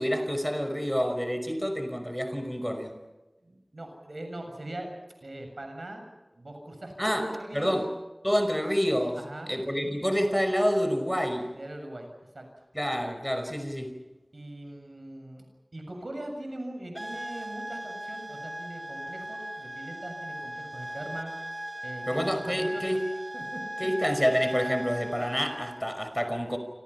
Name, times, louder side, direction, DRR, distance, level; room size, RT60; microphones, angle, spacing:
voice 1, 0.0-3.0 7.0-7.8 8.2-9.2 9.5-11.5 12.7-14.0 22.1-23.0 23.8-26.6, equal, 5° left, 7 dB, 5.3 m, -28 dB
voice 2, 3.4-4.9 5.2-6.0 6.3-7.8 9.2-10.0 11.5-12.1 12.3-12.5 13.5-13.7 14.3-15.4 15.7-21.3 21.6-23.0 23.3-23.6, right 1 dB, 80° right, 4 dB, 7.3 m, -41 dB
sound 1, 16.9-25.9, right 1 dB, 30° right, 2.9 m, -38 dB
29.0 x 26.0 x 5.8 m, 1.1 s
wide cardioid pair, 40°, 0 cm